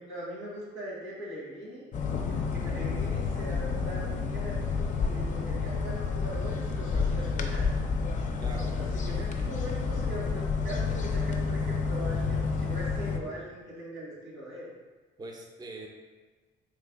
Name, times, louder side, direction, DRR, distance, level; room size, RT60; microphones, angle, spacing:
voice 1, 0.0-1.8 2.2-7.9 8.7-14.7, equal, 90° right, -5 dB, 1.3 m, -41 dB
sound 1, 1.9-13.2, left 4 dB, 40° left, 0.4 m, -30 dB
voice 2, 8.4-8.8 15.2-15.9, right 2 dB, 20° right, 0 dB, 0.5 m, -42 dB
3.2 x 2.2 x 3.5 m, 1.4 s
cardioid pair, 90°, 20 cm